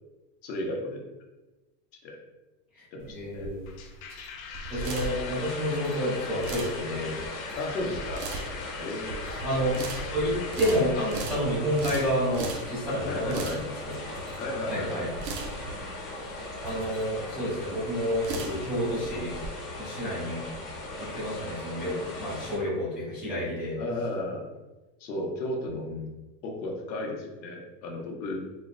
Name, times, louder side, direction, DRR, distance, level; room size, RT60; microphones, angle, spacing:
voice 1, 0.4-1.0 2.0-2.2 2.9-3.5 7.6-8.3 8.8-9.3 13.0-13.8 14.3-15.1 23.8-24.5 25.0-25.9 26.4-28.5, left 1 dB, 90° left, 0 dB, 1.1 m, -34 dB
taking photo with camera, 3.0-19.5, right 3 dB, 75° right, 0.7 m, -39 dB
voice 2, 3.1-3.6 4.7-7.1 9.4-13.7 14.7-15.1 16.6-19.3 19.8-20.4 21.0-23.8 25.7-26.0, equal, 5° right, -15 dB, 0.4 m, -29 dB
sound 1, 3.7-11.3, left 6 dB, 55° left, 0.6 m, -42 dB
sound 2, 4.9-22.6, left 1 dB, 20° left, 0.8 m, -39 dB
4.3 x 2.1 x 2.5 m, 1.1 s
supercardioid pair, 155°, 50 cm